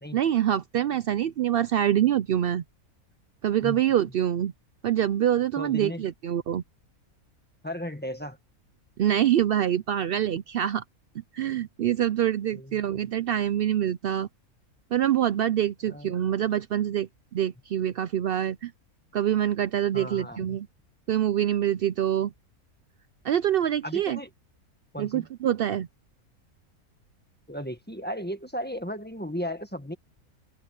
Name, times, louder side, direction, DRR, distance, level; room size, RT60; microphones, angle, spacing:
voice 1, 0.1-2.6 3.4-4.5 4.8-6.6 9.0-10.8 11.3-14.3 14.9-18.7 19.1-20.7 21.1-22.3 23.2-24.2 25.0-25.9, right 11 dB, 80° right, 0.5 m, -25 dB
voice 2, 5.6-6.0 7.6-8.4 12.5-13.0 15.9-16.1 19.9-20.6 23.8-24.3 24.9-25.3 27.5-29.9, equal, 5° left, 1.5 m, -35 dB
omnidirectional pair, 1.5 m